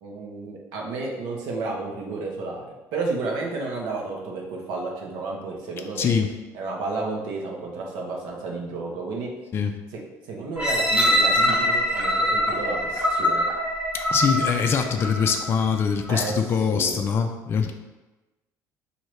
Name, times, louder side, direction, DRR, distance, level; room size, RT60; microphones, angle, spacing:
voice 1, 0.0-6.1 6.5-9.3 9.9-10.0 10.3-13.5 16.1-16.3 16.7-17.0, right 3 dB, 80° right, 0 dB, 1.0 m, -31 dB
voice 2, 6.0-6.3 9.5-9.7 14.1-17.7, left 6 dB, 35° left, 4 dB, 0.4 m, -23 dB
sound 1, 10.6-15.5 16.1-16.2, equal, 15° right, 1.1 m, -23 dB
6.1 x 2.7 x 3.2 m, 1.1 s
cardioid pair, 130°, 7 cm